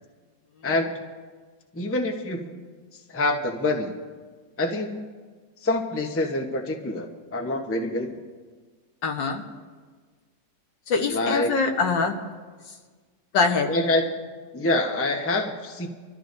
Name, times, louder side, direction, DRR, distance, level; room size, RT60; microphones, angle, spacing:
voice 1, 0.6-1.0 1.7-2.7 3.1-3.9 4.6-5.0 5.6-8.2 11.1-11.5 13.7-14.2 14.5-15.9, left 2 dB, 15° left, 3 dB, 0.5 m, -26 dB
voice 2, 9.0-9.4 10.9-12.2 13.3-13.7, left 4 dB, 80° left, 3 dB, 1.8 m, -23 dB
25.0 x 13.0 x 2.6 m, 1.5 s
omnidirectional pair, 1.9 m